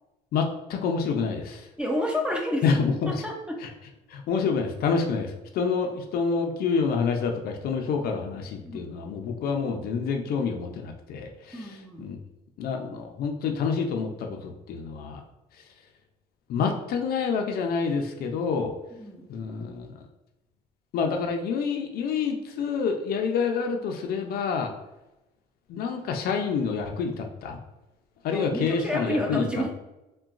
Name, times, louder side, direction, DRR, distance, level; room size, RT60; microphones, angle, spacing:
voice 1, 0.3-1.7 2.6-3.2 3.6-3.7 4.1-12.2 12.6-15.2 16.5-18.7 19.3-20.0 20.9-24.7 25.7-27.6 28.2-29.5, left 5 dB, 65° left, 4 dB, 0.5 m, -28 dB
voice 2, 1.8-2.6 3.1-3.6 8.6-8.8 11.5-12.0 18.9-19.3 28.3-29.7, left 1 dB, 5° right, 0 dB, 0.5 m, -29 dB
3.8 x 2.2 x 2.4 m, 0.96 s
cardioid pair, 110°, 17 cm